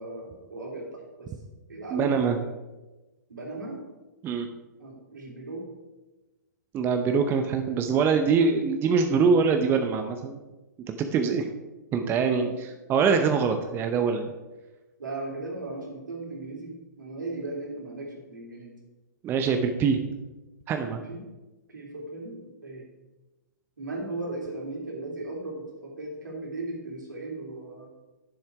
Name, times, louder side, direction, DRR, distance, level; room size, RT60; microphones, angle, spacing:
voice 1, 0.0-1.3 1.7-2.5 3.3-3.8 4.8-5.7 12.0-12.1 12.4-12.5 15.0-18.7 20.9-21.2 21.7-22.8 23.8-27.9, right 2 dB, 80° right, -1 dB, 3.4 m, -37 dB
voice 2, 1.9-2.4 4.2-4.5 6.7-10.4 10.9-11.5 11.9-12.5 12.9-14.3 19.2-20.0 20.7-21.0, right 5 dB, 20° right, 6 dB, 0.8 m, -24 dB
9.9 x 7.3 x 4.8 m, 1.1 s
hypercardioid pair, 125°, 10 cm